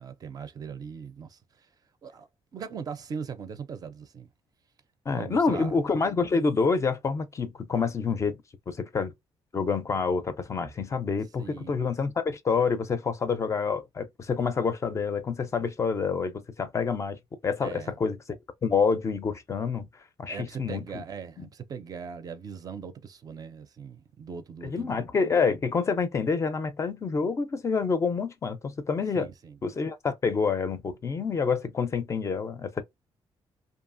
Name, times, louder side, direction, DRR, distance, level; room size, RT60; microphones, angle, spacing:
voice 1, 0.0-1.7 2.0-2.3 2.5-4.3 5.1-5.8 11.4-11.8 17.6-17.9 20.3-25.0 29.1-29.6, right 6 dB, 40° right, 0.4 m, -40 dB
voice 2, 5.1-9.1 9.5-17.2 17.4-18.2 18.6-19.9 20.2-21.0 21.4-21.5 24.6-29.3 29.6-32.8, left 5 dB, 30° left, 0.4 m, -27 dB
2.7 x 2.3 x 2.5 m
cardioid pair, 135°, 10 cm